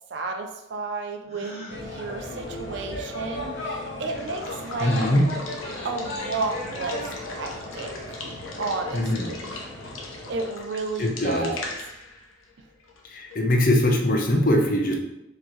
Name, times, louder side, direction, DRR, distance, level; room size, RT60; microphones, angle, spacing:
voice 1, 0.1-5.0 5.8-8.2 8.6-9.6 10.3-11.7, right 3 dB, 60° right, 4 dB, 0.4 m, -32 dB
Gasp, 1.2-1.8, right 1 dB, 30° right, 1.0 m, -40 dB
sound 1, 1.7-10.4, left 1 dB, 65° left, 1.1 m, -36 dB
Water / Water tap faucet / Liquid, 3.9-13.6, left 3 dB, 85° left, 0.7 m, -39 dB
voice 2, 4.8-5.3 8.9-9.3 11.0-11.5 13.1-14.9, left 1 dB, 45° left, 1 dB, 0.6 m, -21 dB
4.3 x 2.9 x 3.0 m, 0.90 s
head